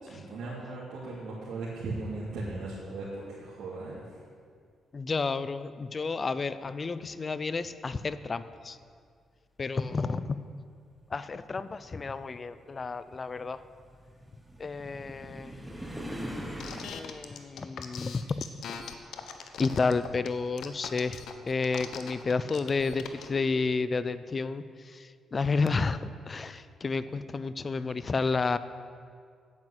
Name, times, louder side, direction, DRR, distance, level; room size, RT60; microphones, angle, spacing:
voice 1, 0.1-4.2, right 2 dB, 70° right, -9 dB, 2.7 m, -38 dB
voice 2, 4.9-8.8 9.6-10.4 11.1-13.6 14.6-15.6 16.9-18.4 19.6-28.6, left 4 dB, 35° left, 14 dB, 0.5 m, -31 dB
sound 1, 9.6-9.7 10.8-16.9, equal, 10° right, 1.5 m, -42 dB
sound 2, 16.6-23.3, left 7 dB, 75° left, 0.9 m, -40 dB
8.8 x 8.5 x 8.0 m, 2.2 s
cardioid pair, 95°, 0 cm